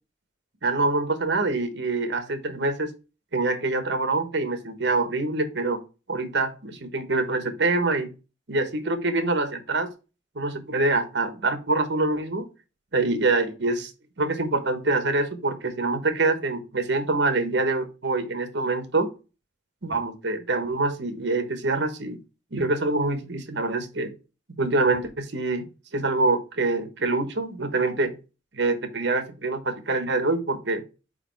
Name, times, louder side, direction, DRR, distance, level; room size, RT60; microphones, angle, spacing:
voice 1, 0.6-2.9 3.3-5.8 6.1-8.1 8.5-9.9 10.4-12.5 12.9-13.9 14.2-19.1 19.8-22.2 22.5-24.1 24.6-25.7 25.9-28.1 28.5-30.8, right 3 dB, 65° right, 1.1 m, -25 dB
4.9 x 4.8 x 4.5 m
head